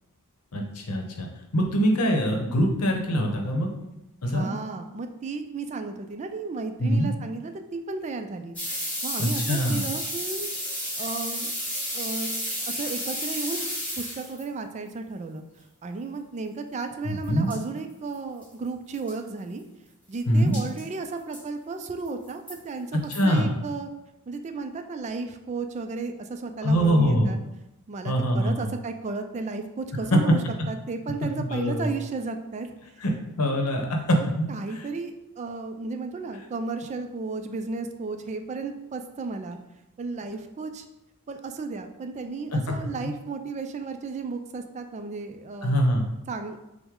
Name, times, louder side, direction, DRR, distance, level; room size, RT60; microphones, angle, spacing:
voice 1, 0.5-1.3 1.5-3.9 4.2-4.5 6.8-7.1 9.2-9.9 17.0-17.5 20.3-20.6 23.1-23.5 26.6-27.3 28.0-28.7 30.1-30.2 31.4-31.9 33.0-34.5 42.5-42.6 43.0-43.1 45.6-46.1, equal, 85° left, 2 dB, 0.8 m, -23 dB
voice 2, 4.2-8.6 9.0-10.5 11.0-11.5 11.9-12.3 12.7-13.7 14.0-15.4 15.8-19.6 20.1-23.9 24.3-27.4 27.9-30.4 30.7-32.7 33.5-33.8 34.5-39.6 40.0-40.9 41.3-45.8 46.3-46.6, right 4 dB, 30° right, 6 dB, 0.3 m, -34 dB
sound 1, 8.5-14.4 17.2-17.3 17.5-17.6 18.1-18.2 18.4-18.5 18.9-19.1 20.5-20.8 21.3-21.4 22.0-22.5 23.1-23.2, equal, 5° left, 1.4 m, -32 dB
5.9 x 2.1 x 3.6 m, 0.95 s
head